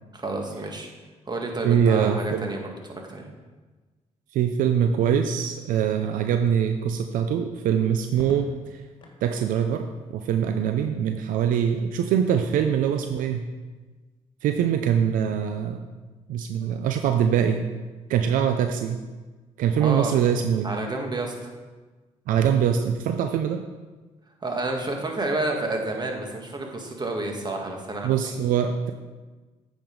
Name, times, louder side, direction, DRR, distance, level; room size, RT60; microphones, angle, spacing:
voice 1, 0.1-0.9 1.3-3.3 19.8-20.1 20.6-21.5 24.4-28.3, right 2 dB, 30° right, 2 dB, 1.8 m, -30 dB
voice 2, 1.6-2.5 4.3-8.8 9.2-13.5 14.4-15.8 16.3-17.7 18.1-19.0 19.6-20.7 22.3-23.6 28.0-28.9, right 8 dB, 80° right, 6 dB, 0.5 m, -23 dB
Crackle, 8.1-9.3 10.8-11.4, left 2 dB, 35° left, 2.0 m, -44 dB
8.7 x 5.3 x 5.3 m, 1.3 s
supercardioid pair, 65°, 14 cm